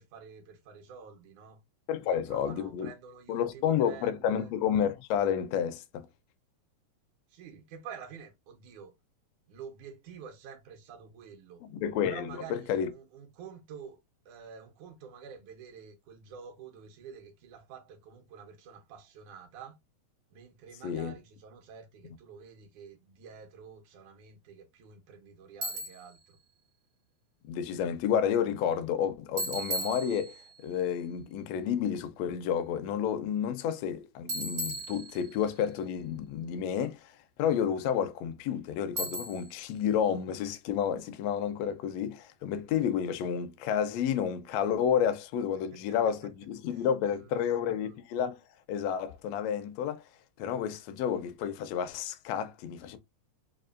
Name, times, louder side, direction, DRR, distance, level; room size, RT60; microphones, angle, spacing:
voice 1, 0.0-1.6 2.1-4.5 7.3-8.9 9.5-11.6 12.1-14.0 14.3-19.8 20.3-26.4 45.7-46.0 47.0-48.0, right 6 dB, 75° right, 2.3 m, -48 dB
voice 2, 1.9-2.9 3.3-6.1 11.6-12.9 20.8-21.1 27.4-48.4 48.7-50.0 50.4-53.0, left 8 dB, 85° left, 1.5 m, -30 dB
Bicycle, 25.6-26.1 29.4-30.6 34.3-35.5 39.0-39.6, right 1 dB, 55° right, 0.9 m, -36 dB
5.2 x 2.4 x 2.4 m
omnidirectional pair, 3.6 m